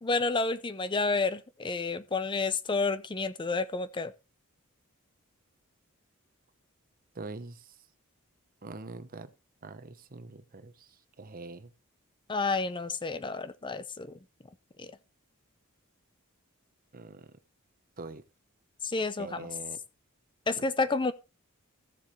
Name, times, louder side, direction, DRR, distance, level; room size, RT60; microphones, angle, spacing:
voice 1, 0.0-4.1 12.3-14.1 18.8-19.5 20.5-21.1, left 3 dB, 20° left, 0.5 m, -30 dB
voice 2, 7.2-7.6 8.6-9.3 9.6-10.7 11.2-11.7 16.9-17.2 18.0-18.2 19.2-19.8, right 3 dB, 40° right, 0.9 m, -43 dB
15.0 x 7.3 x 3.1 m
head